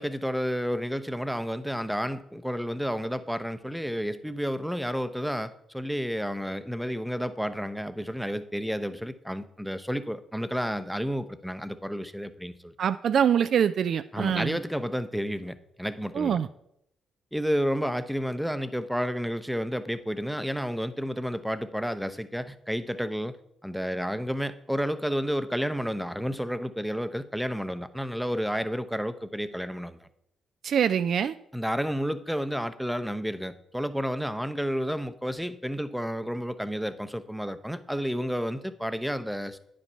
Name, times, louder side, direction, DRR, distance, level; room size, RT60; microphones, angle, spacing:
voice 1, 0.0-12.7 14.1-16.4 17.3-23.4 23.6-30.1 31.5-39.6, equal, ahead, 12 dB, 0.7 m, -31 dB
voice 2, 12.8-14.6 16.1-16.5 30.6-31.3, right 8 dB, 60° right, 12 dB, 0.3 m, -24 dB
9.5 x 5.2 x 5.6 m, 0.75 s
hypercardioid pair, 45°, 0 cm